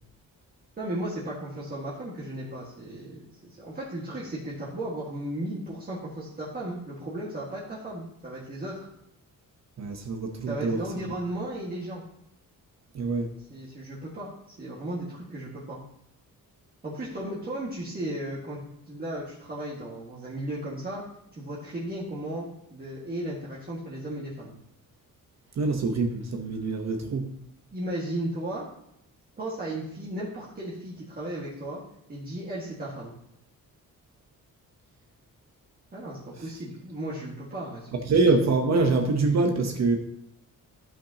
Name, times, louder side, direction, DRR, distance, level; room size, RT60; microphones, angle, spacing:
voice 1, 0.8-8.9 10.5-12.0 13.5-15.8 16.8-18.6 18.9-21.0 21.3-24.5 27.7-28.7 29.4-31.8 32.1-33.1 35.9-38.0, right 1 dB, 25° right, -7 dB, 1.7 m, -35 dB
voice 2, 9.8-10.8 11.0-11.1 12.9-13.3 25.5-27.3 38.0-40.0, right 3 dB, 50° right, 3 dB, 0.9 m, -25 dB
13.5 x 5.7 x 2.8 m, 0.79 s
wide cardioid pair, 155°, 34 cm